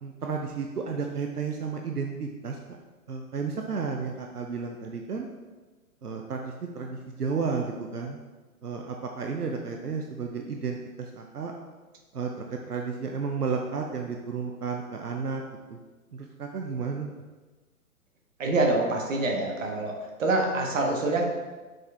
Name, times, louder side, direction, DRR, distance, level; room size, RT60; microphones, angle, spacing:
voice 1, 0.0-2.6 3.1-5.3 6.0-8.2 8.6-11.5 12.1-15.4 15.7-15.8 16.1-17.1, right 5 dB, 90° right, 2 dB, 0.7 m, -32 dB
voice 2, 18.4-19.9 20.2-21.2, right 2 dB, 55° right, 1 dB, 1.3 m, -25 dB
6.2 x 4.6 x 3.4 m, 1.3 s
figure-of-eight pair, 115°, 45 cm